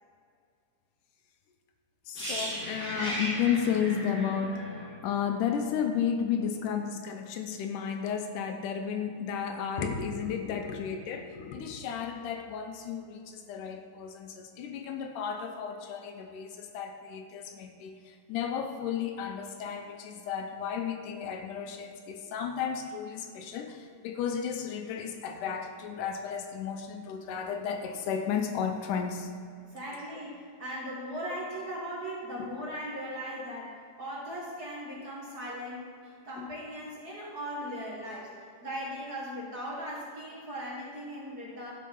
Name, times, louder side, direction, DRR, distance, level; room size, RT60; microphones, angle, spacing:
voice 1, 2.1-29.3 36.4-36.5, left 7 dB, 75° left, 5 dB, 2.1 m, -33 dB
sound 1, 2.1-6.0 6.3-6.5, equal, 5° right, 0.8 m, -36 dB
voice 2, 29.7-38.3 38.6-41.7, equal, 45° right, -5 dB, 1.3 m, -38 dB
12.5 x 5.5 x 5.5 m, 2.3 s
omnidirectional pair, 4.1 m